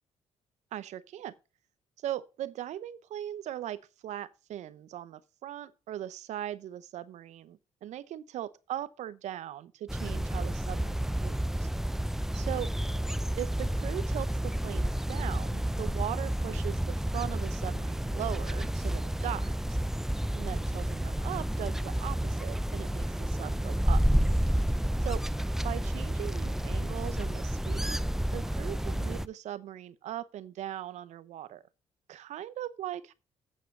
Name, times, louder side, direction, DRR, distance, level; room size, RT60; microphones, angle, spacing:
voice 1, 0.7-1.3 2.0-11.7 12.3-12.7 13.4-19.5 20.4-24.0 25.0-25.3 25.6-28.0 28.3-31.6 32.1-33.1, right 12 dB, 70° right, 0.7 m, -39 dB
sound 1, 9.9-29.3, right 1 dB, 5° right, 0.4 m, -30 dB
8.5 x 5.6 x 5.3 m
cardioid pair, 80°, 12 cm